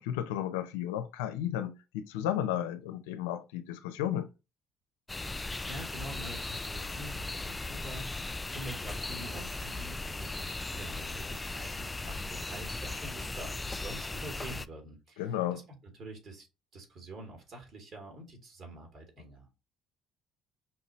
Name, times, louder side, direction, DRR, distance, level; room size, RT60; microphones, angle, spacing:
voice 1, 0.0-4.3 15.2-15.6, left 11 dB, 90° left, 0.5 m, -33 dB
sound 1, 5.1-14.7, left 2 dB, 20° left, 0.3 m, -37 dB
voice 2, 5.5-15.6 15.9-16.5 16.7-19.5, right 1 dB, 55° right, 2.5 m, -46 dB
5.7 x 2.7 x 3.0 m
supercardioid pair, 70°, 0 cm